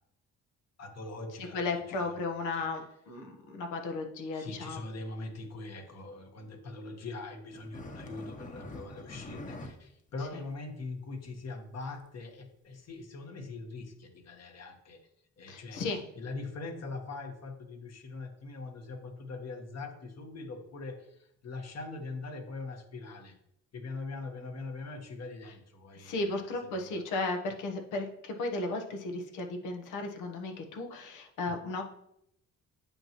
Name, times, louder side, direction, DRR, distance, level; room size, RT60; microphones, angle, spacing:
voice 1, 0.8-2.2 2.5-2.8 4.3-15.0 15.4-15.8 16.1-23.3 23.7-27.0, left 3 dB, 60° left, 3 dB, 1.6 m, -42 dB
voice 2, 1.5-4.8 10.3-10.4 15.5-16.0 26.0-31.8, left 3 dB, 90° left, 4 dB, 1.3 m, -35 dB
sound 1, 7.5-9.7 10.1-10.2 10.5-10.6 11.3-11.4 12.0-12.1 12.9-13.0, left 2 dB, 25° left, 1.0 m, -44 dB
8.7 x 6.0 x 3.1 m, 0.75 s
cardioid pair, 90°, 30 cm